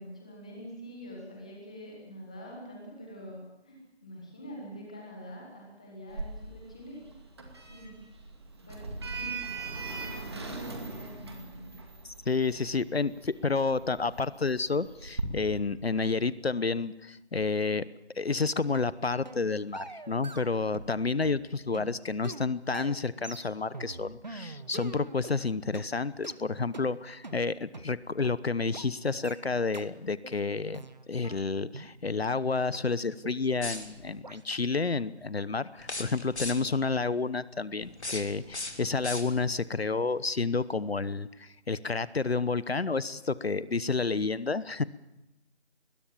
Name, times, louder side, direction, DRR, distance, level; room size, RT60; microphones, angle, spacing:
voice 1, 0.0-7.0 7.7-8.0 8.6-9.7 10.2-11.7, equal, 5° left, -1 dB, 1.5 m, -45 dB
Sliding door, 6.1-15.2, right 4 dB, 25° right, 2.4 m, -40 dB
voice 2, 12.0-17.8 18.2-30.8 31.1-44.8, left 4 dB, 65° left, 17 dB, 1.0 m, -30 dB
sound 1, 18.7-18.9 19.2-19.4 19.7-21.0 21.2-25.4 25.7-25.9 26.2-26.4 26.7-26.9 27.2-27.4 27.7-27.9 28.2-28.4 28.7-28.9 29.2-29.4 29.7-29.9 30.2-30.4 30.7-31.9 32.2-32.3 32.7-32.8 33.2-33.4 33.7-33.9 34.2-34.4, right 3 dB, 40° right, 1.4 m, -44 dB
sound 2, 33.5-34.2 35.8-36.8 37.8-39.7, left 2 dB, 80° left, 3.8 m, -39 dB
24.0 x 21.0 x 7.3 m, 0.95 s
figure-of-eight pair, 175°, 33 cm